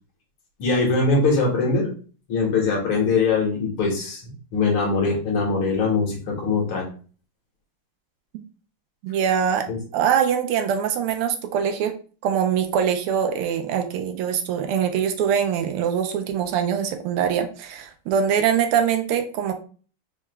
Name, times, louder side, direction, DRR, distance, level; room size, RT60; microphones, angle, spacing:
voice 1, 0.6-1.9 2.3-4.2 4.5-6.9 9.7-9.8, left 4 dB, 75° left, -2 dB, 2.2 m, -22 dB
voice 2, 9.0-9.7 9.9-11.9 12.2-19.5, right 8 dB, 90° right, 6 dB, 1.6 m, -23 dB
4.7 x 3.1 x 2.2 m, 0.39 s
omnidirectional pair, 2.4 m